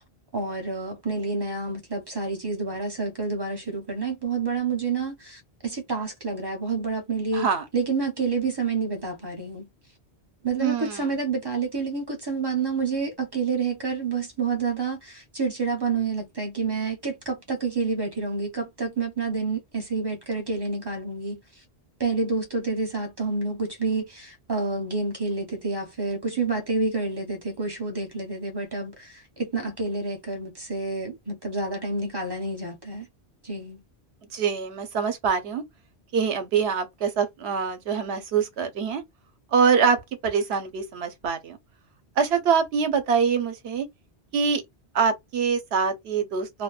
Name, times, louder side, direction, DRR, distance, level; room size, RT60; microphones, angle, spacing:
voice 1, 0.3-7.5 7.7-9.7 10.4-21.4 22.0-33.0 33.4-33.8, right 4 dB, 30° right, 0.6 m, -28 dB
voice 2, 7.3-7.6 10.6-11.2 34.3-35.6 36.1-39.0 39.5-41.6 42.2-43.9 44.3-44.6 44.9-46.6, right 6 dB, 75° right, 0.9 m, -24 dB
2.6 x 2.1 x 2.3 m
omnidirectional pair, 1.1 m